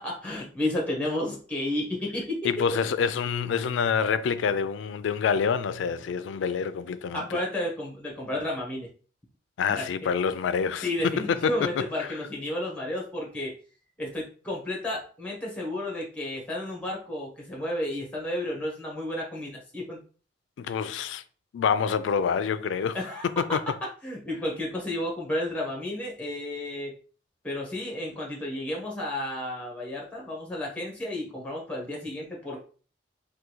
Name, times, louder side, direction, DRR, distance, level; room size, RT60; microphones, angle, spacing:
voice 1, 0.0-2.4 7.1-8.9 9.7-10.1 10.8-13.5 14.0-20.0 22.9-23.3 24.0-27.0 27.4-32.6, left 1 dB, 10° left, 1.0 m, -32 dB
voice 2, 2.4-7.4 9.6-11.5 12.0-12.1 20.6-21.2 21.5-23.0 23.4-23.6, left 6 dB, 85° left, 0.3 m, -27 dB
3.5 x 2.3 x 3.0 m
head